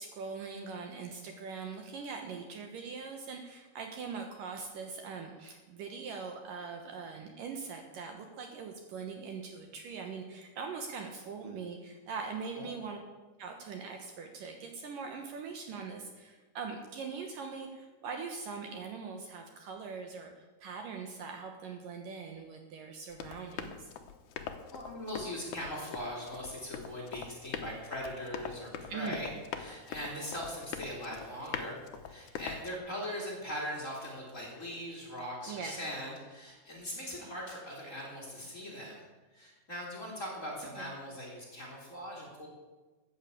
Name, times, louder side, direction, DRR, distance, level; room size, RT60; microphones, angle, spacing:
voice 1, 0.0-13.0 13.4-23.9 28.9-29.2 35.5-35.8 40.8-40.9, right 5 dB, 65° right, 4 dB, 2.6 m, -42 dB
Run, 23.1-32.8, left 8 dB, 70° left, 2.0 m, -43 dB
voice 2, 24.7-31.8 32.0-39.0 39.3-42.5, equal, 20° left, -2 dB, 3.2 m, -40 dB
14.0 x 8.7 x 8.5 m, 1.2 s
omnidirectional pair, 4.6 m